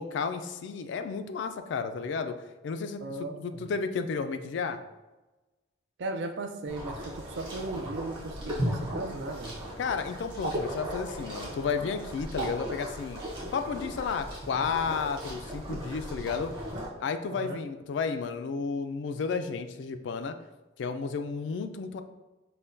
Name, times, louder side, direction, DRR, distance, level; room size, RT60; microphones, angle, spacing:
voice 1, 0.0-2.4 2.6-3.0 3.4-4.8 9.8-13.2 13.5-16.5 17.0-20.4 20.8-22.0, left 5 dB, 65° left, 9 dB, 0.3 m, -32 dB
voice 2, 3.0-3.7 6.0-9.6 17.3-17.6, right 2 dB, 65° right, 6 dB, 0.4 m, -37 dB
sound 1, 6.6-16.9, right 1 dB, 25° right, 1.0 m, -37 dB
5.6 x 2.1 x 2.6 m, 1.1 s
head